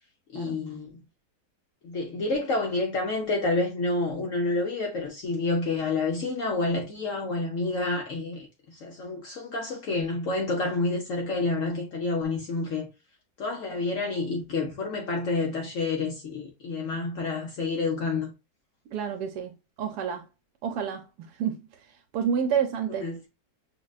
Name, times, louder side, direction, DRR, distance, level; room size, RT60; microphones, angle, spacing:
voice 1, 0.3-1.0 1.8-12.9 13.4-18.3 22.9-23.3, left 3 dB, 60° left, 1.0 m, -29 dB
voice 2, 18.9-19.5 19.8-20.2 20.6-21.0 21.4-21.6 22.1-23.1, right 7 dB, 80° right, 1.1 m, -28 dB
6.2 x 2.2 x 2.3 m
omnidirectional pair, 1.7 m